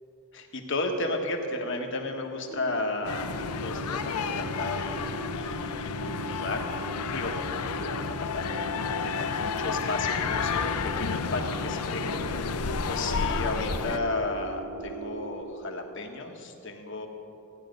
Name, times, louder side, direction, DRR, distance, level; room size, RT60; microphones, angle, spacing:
voice 1, 0.3-3.3 3.6-12.5 12.8-17.1, left 2 dB, 55° left, 3 dB, 1.4 m, -34 dB
sound 1, 2.5-15.4, right 3 dB, 70° right, 2.8 m, -40 dB
sound 2, 3.0-14.0, left 6 dB, 85° left, 0.6 m, -31 dB
16.0 x 10.5 x 5.3 m, 2.9 s
head